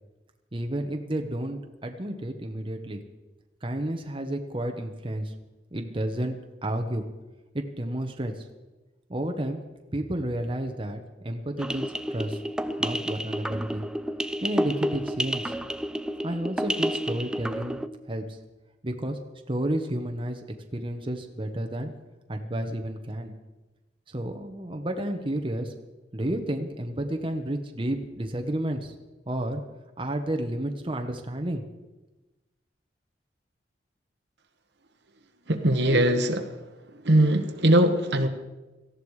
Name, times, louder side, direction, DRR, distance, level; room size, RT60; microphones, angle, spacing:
voice 1, 0.5-3.0 3.6-5.3 5.7-6.4 6.6-7.0 7.5-8.4 9.1-9.6 9.9-12.4 12.8-13.8 14.4-15.5 16.2-17.8 18.1-18.4 18.8-19.2 19.5-20.4 20.7-21.9 22.3-23.3 24.1-25.7 26.1-28.9 29.3-29.6 30.0-31.6, right 1 dB, 30° right, 4 dB, 1.2 m, -31 dB
sound 1, 11.6-17.9, equal, 5° right, 0.5 m, -30 dB
voice 2, 35.5-36.4 37.0-38.3, right 1 dB, 70° right, 6 dB, 1.4 m, -21 dB
18.0 x 14.0 x 4.9 m, 1.1 s
head